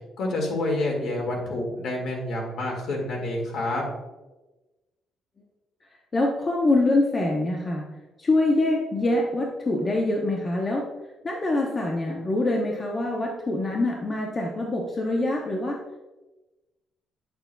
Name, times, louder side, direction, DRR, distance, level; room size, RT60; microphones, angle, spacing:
voice 1, 0.2-3.8, left 2 dB, 55° left, 0 dB, 1.9 m, -28 dB
voice 2, 6.1-7.8 8.2-10.8 11.2-15.8, left 2 dB, 25° left, -1 dB, 0.7 m, -24 dB
8.5 x 6.8 x 2.3 m, 1.1 s
cardioid pair, 170°, 0 cm